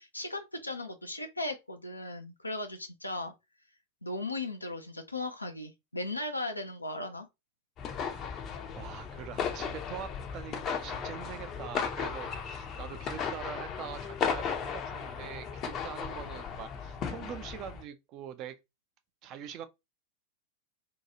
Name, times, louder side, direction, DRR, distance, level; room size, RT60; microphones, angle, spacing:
voice 1, 0.0-3.3 4.0-7.3, left 2 dB, 85° left, 0.4 m, -37 dB
sound 1, 7.8-17.8, left 6 dB, 30° left, 0.5 m, -36 dB
voice 2, 8.8-18.6 19.2-19.7, right 9 dB, 35° right, 0.4 m, -44 dB
2.8 x 2.2 x 2.7 m
figure-of-eight pair, 90°, 0 cm